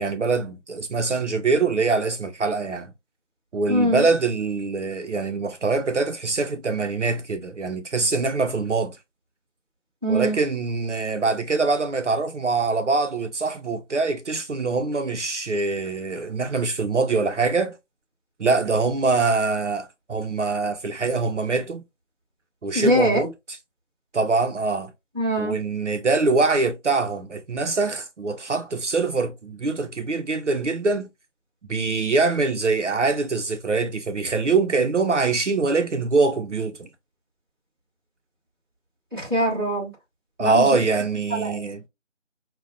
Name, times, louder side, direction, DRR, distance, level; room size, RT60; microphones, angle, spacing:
voice 1, 0.0-2.9 3.5-9.0 10.1-17.7 18.4-21.8 22.6-23.3 24.1-24.9 25.4-31.1 31.7-36.9 40.4-41.8, right 3 dB, 70° right, 0.7 m, -23 dB
voice 2, 3.7-4.1 10.0-10.4 22.7-23.3 25.1-25.5 39.1-39.9 40.4-40.6 41.3-41.6, equal, 20° right, 1.5 m, -22 dB
5.8 x 2.2 x 2.4 m
figure-of-eight pair, 175°, 37 cm